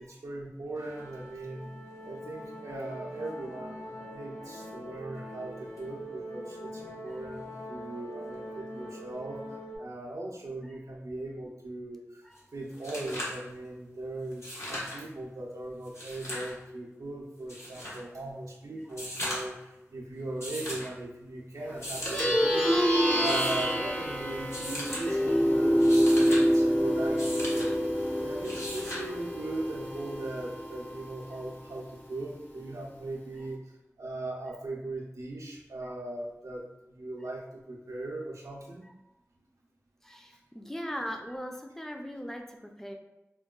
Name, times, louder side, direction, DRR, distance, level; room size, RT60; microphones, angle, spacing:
voice 1, 0.0-1.7 2.0-9.4 9.8-27.9 28.2-38.9 40.6-40.7, right 2 dB, 80° right, -3 dB, 0.4 m, -39 dB
sound 1, 0.7-9.8, equal, 85° left, 0.5 m, -43 dB
sound 2, 12.4-12.5 12.7-13.4 14.3-15.0 15.8-16.5 17.5-18.0 18.9-19.6 20.4-20.9 21.7-22.3 23.1-23.7 24.5-25.0 25.7-26.4 27.2-27.7 28.4-29.1 30.5-30.6, left 1 dB, 55° left, 1.0 m, -37 dB
Plucked string instrument, 21.9-31.6, equal, 35° left, 0.7 m, -27 dB
voice 2, 40.0-42.9, equal, 5° left, 3 dB, 0.4 m, -40 dB
3.7 x 2.2 x 2.3 m, 0.95 s
wide cardioid pair, 45°, 5 cm